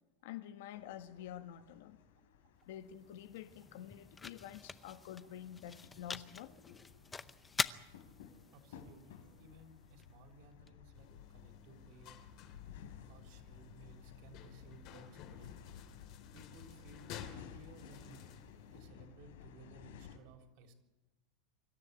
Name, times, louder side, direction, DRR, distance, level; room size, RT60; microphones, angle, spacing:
voice 1, 0.2-2.0 2.7-6.5, left 11 dB, 60° left, 1.4 m, -48 dB
sound 1, 0.7-20.2, left 8 dB, 80° left, 3.9 m, -56 dB
sound 2, 2.6-10.7, left 4 dB, 10° left, 0.7 m, -45 dB
voice 2, 8.5-12.3 13.1-15.5 16.3-18.3 18.7-20.7, right 3 dB, 45° right, 3.9 m, -59 dB
sound 3, 10.9-18.8, left 9 dB, 40° left, 2.6 m, -54 dB
25.0 x 13.5 x 9.8 m
supercardioid pair, 170°, 0 cm